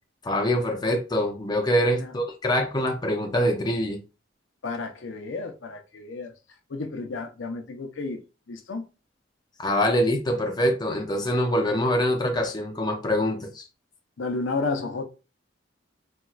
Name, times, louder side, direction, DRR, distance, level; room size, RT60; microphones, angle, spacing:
voice 1, 0.2-4.0 9.6-13.6, equal, 20° left, 0.5 m, -24 dB
voice 2, 4.6-6.3 6.7-8.2 8.5-8.8 14.2-15.0, left 3 dB, 75° left, 0.6 m, -31 dB
4.1 x 2.2 x 2.3 m
head